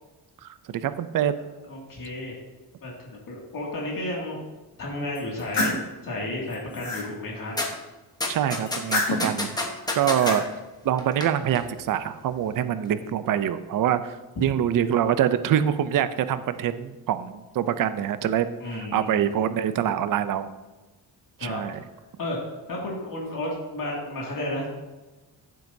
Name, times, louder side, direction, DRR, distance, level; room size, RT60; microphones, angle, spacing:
voice 1, 0.4-1.3 8.3-9.6 10.0-10.5 10.8-20.5 21.4-21.8, right 10 dB, 55° right, 12 dB, 0.5 m, -25 dB
voice 2, 1.7-2.4 2.8-4.4 4.8-5.8 6.0-7.5 18.6-19.3 21.4-21.6 22.2-22.4 22.7-24.7, left 1 dB, 55° left, -4 dB, 2.3 m, -32 dB
sound 1, 5.1-5.8 6.4-7.1 8.7-9.4 9.9-10.4, left 2 dB, 90° left, 3.1 m, -29 dB
sound 2, 7.6-7.7 8.2-10.4 11.0-11.3 11.6-11.7, left 2 dB, 10° left, 1.0 m, -27 dB
14.5 x 7.6 x 2.7 m, 1.2 s
wide cardioid pair, 180°, 40 cm